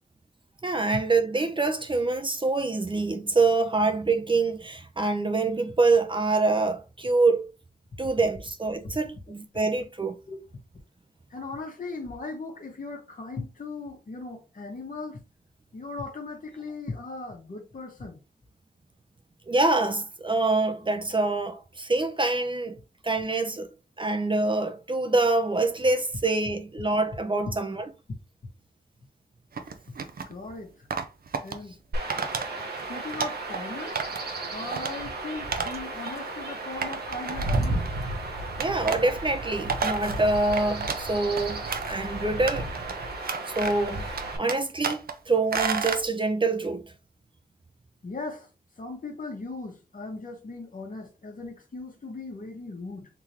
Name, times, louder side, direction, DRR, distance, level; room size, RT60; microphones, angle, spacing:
voice 1, 0.6-7.5 8.0-10.2 19.5-22.8 23.0-27.9 38.6-42.9 43.5-45.0 45.3-46.9, right 3 dB, 30° right, 0.6 m, -25 dB
voice 2, 11.3-15.2 15.7-18.2 23.5-23.6 30.3-30.9 31.4-31.8 32.9-34.0 34.5-37.8 48.0-48.5 48.8-53.1, left 3 dB, 55° left, 1.4 m, -38 dB
sound 1, 29.5-30.3 30.9-31.5 32.1-32.5 32.8-33.6 33.9-34.3 34.6-34.9 35.5-35.7 36.0-36.1 36.8-37.9 38.6-39.0 39.4-41.1 41.4-42.1 42.5-42.9 43.2-43.9 44.2-45.1 45.5-46.0, right 5 dB, 70° right, 0.6 m, -31 dB
Chirp tweet / Wind / Stream, 31.9-44.4, right 2 dB, 85° right, 1.1 m, -33 dB
3.7 x 3.3 x 2.9 m
cardioid pair, 50°, 16 cm